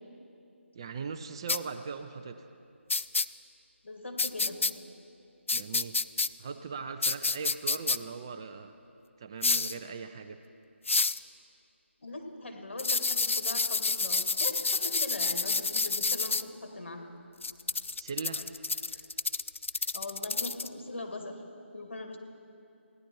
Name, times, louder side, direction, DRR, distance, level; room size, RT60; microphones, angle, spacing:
voice 1, 0.7-2.5 5.5-6.0 6.4-8.7 9.2-10.4 18.0-18.4 18.9-19.0 19.7-19.9, right 5 dB, 20° right, 7 dB, 0.3 m, -40 dB
sound 1, 1.5-1.6 2.9-3.2 4.2-4.7 5.5-6.3 7.0-8.0 9.4-9.7 10.9-11.2 12.8-16.4 17.4-20.7, left 3 dB, 75° left, 0.4 m, -29 dB
voice 2, 3.8-4.6 12.0-17.1 19.9-21.4 21.7-22.2, left 2 dB, 60° left, 3 dB, 1.9 m, -40 dB
16.0 x 10.5 x 4.6 m, 2.6 s
figure-of-eight pair, 160°, 7 cm